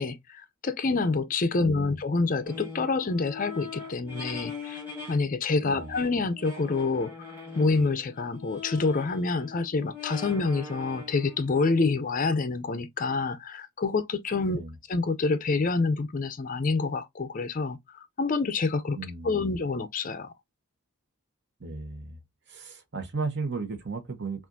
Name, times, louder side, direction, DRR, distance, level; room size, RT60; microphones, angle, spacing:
voice 1, 0.0-4.8 5.1-14.6 14.9-19.0 19.2-20.3, left 3 dB, 35° left, 0.4 m, -27 dB
voice 2, 1.6-2.0 5.6-5.9 14.5-14.7 19.0-19.5 21.6-22.2 22.5-24.5, right 4 dB, 50° right, 1.0 m, -35 dB
sound 1, 2.4-5.2 5.5-11.6, left 4 dB, 10° right, 1.8 m, -42 dB
5.8 x 2.5 x 2.5 m
head